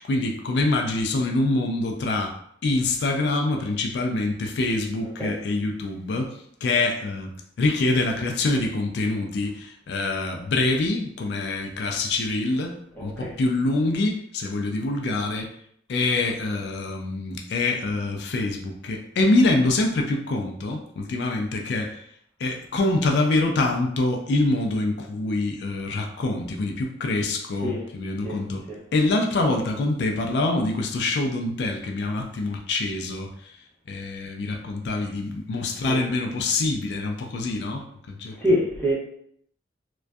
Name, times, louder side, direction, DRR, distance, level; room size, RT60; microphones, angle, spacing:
voice 1, 0.0-2.4 2.6-15.5 15.9-22.0 22.4-28.6 28.9-33.5 33.9-38.5, left 2 dB, 65° left, 2 dB, 0.3 m, -25 dB
voice 2, 38.4-38.9, equal, 10° left, -7 dB, 0.8 m, -24 dB
2.5 x 2.2 x 2.2 m, 0.69 s
head